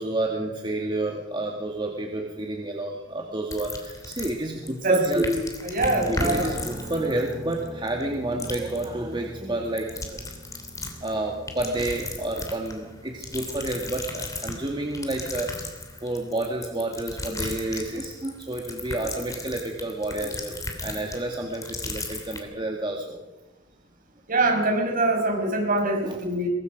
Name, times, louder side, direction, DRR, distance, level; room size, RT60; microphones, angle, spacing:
voice 1, 0.0-5.2 6.1-10.2 11.0-15.7 16.0-23.2 26.0-26.2, right 2 dB, 25° right, 0 dB, 2.1 m, -30 dB
sound 1, 3.5-4.7 5.0-8.1 8.4-8.9 9.7-11.1 11.5-12.8 13.2-22.4, left 2 dB, 20° left, 3.1 m, -36 dB
voice 2, 4.8-6.5 24.3-26.5, right 1 dB, 50° right, 2 dB, 5.8 m, -24 dB
sound 2, 5.8-21.6, right 1 dB, 5° right, 6.9 m, -44 dB
23.5 x 21.0 x 5.3 m, 1.1 s
head